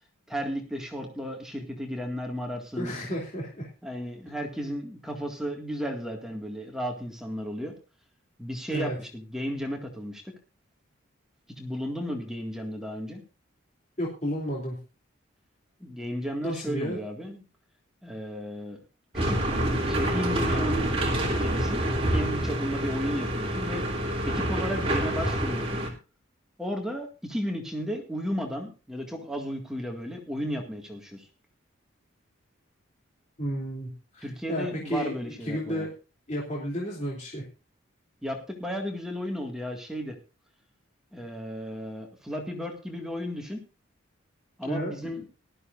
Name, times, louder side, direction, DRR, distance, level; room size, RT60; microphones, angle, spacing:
voice 1, 0.3-2.9 3.8-7.7 8.4-10.3 11.6-13.2 15.8-17.4 18.0-18.8 19.1-19.5 19.8-21.8 22.1-23.8 24.2-25.8 26.6-31.3 34.2-35.9 38.2-40.2 41.1-43.6 44.6-45.2, equal, 5° right, 1 dB, 1.9 m, -34 dB
voice 2, 2.8-3.7 8.7-9.0 14.0-14.8 16.4-17.0 33.4-35.1 35.4-35.9 36.3-37.4 44.6-44.9, equal, 35° left, -2 dB, 3.0 m, -32 dB
sound 1, 19.1-25.9, right 1 dB, 30° right, 3.0 m, -27 dB
18.5 x 13.0 x 2.5 m, 0.31 s
head